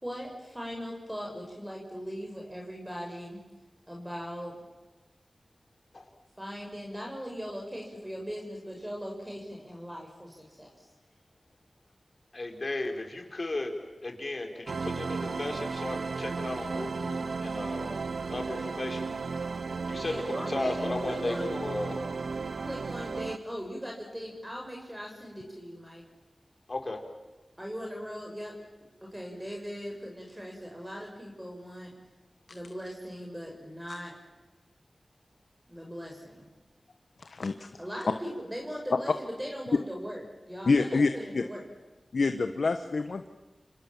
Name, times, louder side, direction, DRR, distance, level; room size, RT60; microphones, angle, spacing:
voice 1, 0.0-3.4 3.9-4.5 6.4-10.7 20.0-21.5 22.6-26.0 27.6-28.5 29.0-31.9 32.5-34.1 35.7-36.5 37.8-40.2 40.5-41.6, equal, 10° right, -1 dB, 6.3 m, -39 dB
voice 2, 12.3-13.7 14.0-17.9 18.3-19.1 19.8-22.1 26.7-27.0, left 2 dB, 50° left, 3 dB, 4.7 m, -35 dB
sound 1, 14.7-23.4, right 4 dB, 85° right, 0.8 m, -34 dB
voice 3, 37.2-37.7 40.6-41.4 42.1-43.3, left 4 dB, 80° left, 8 dB, 1.2 m, -27 dB
30.0 x 26.5 x 7.4 m, 1.2 s
cardioid pair, 50°, 0 cm